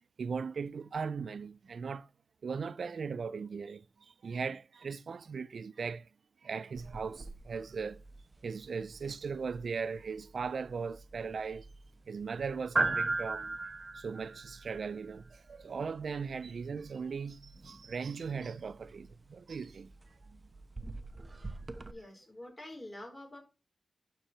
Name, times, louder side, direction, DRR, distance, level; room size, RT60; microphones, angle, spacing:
voice 1, 0.2-2.1 2.4-6.1 6.4-8.0 8.4-11.7 12.1-19.9 20.3-20.4, right 5 dB, 80° right, 0.4 m, -38 dB
sound 1, 6.8-21.9, right 3 dB, 35° right, 0.9 m, -40 dB
voice 2, 21.9-23.4, left 1 dB, 25° left, 4.5 m, -47 dB
11.5 x 4.6 x 4.4 m
wide cardioid pair, 130°, 0 cm